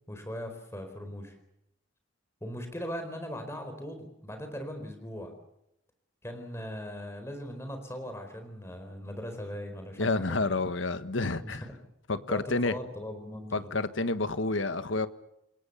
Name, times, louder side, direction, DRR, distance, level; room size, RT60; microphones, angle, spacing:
voice 1, 0.1-1.3 2.4-5.3 6.2-10.5 11.4-11.7 12.3-13.8, equal, 15° left, 6 dB, 4.5 m, -39 dB
voice 2, 10.0-11.6 12.1-12.7 13.5-15.1, left 3 dB, 80° left, 12 dB, 1.4 m, -29 dB
28.5 x 22.0 x 6.9 m, 0.82 s
head